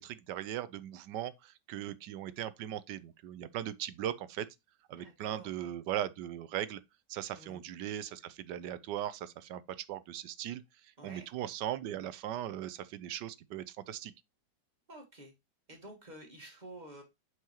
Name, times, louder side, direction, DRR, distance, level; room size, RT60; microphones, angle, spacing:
voice 1, 0.0-4.5 4.9-6.8 7.1-14.1, right 11 dB, 75° right, 1.2 m, -39 dB
voice 2, 5.0-5.7 7.4-7.6 11.0-11.3 14.9-15.3 15.7-17.0, right 1 dB, 25° right, 1.6 m, -50 dB
8.1 x 4.7 x 2.9 m
omnidirectional pair, 1.9 m